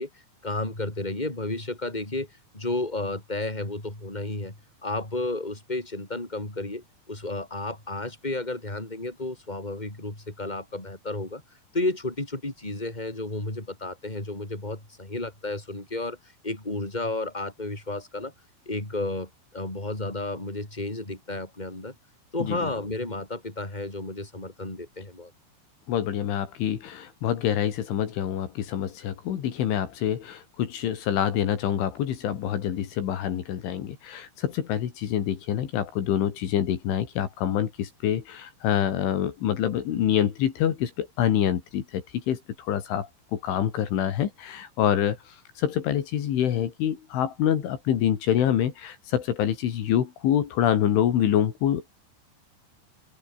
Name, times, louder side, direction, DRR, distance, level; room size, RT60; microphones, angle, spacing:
voice 1, 0.0-2.3 2.5-4.5 4.8-11.4 11.7-16.2 16.4-18.3 18.6-21.9 22.3-25.3, left 2 dB, 10° left, 6.6 m, -32 dB
voice 2, 25.9-51.9, left 10 dB, 75° left, 4.9 m, -26 dB
open air
omnidirectional pair, 5.7 m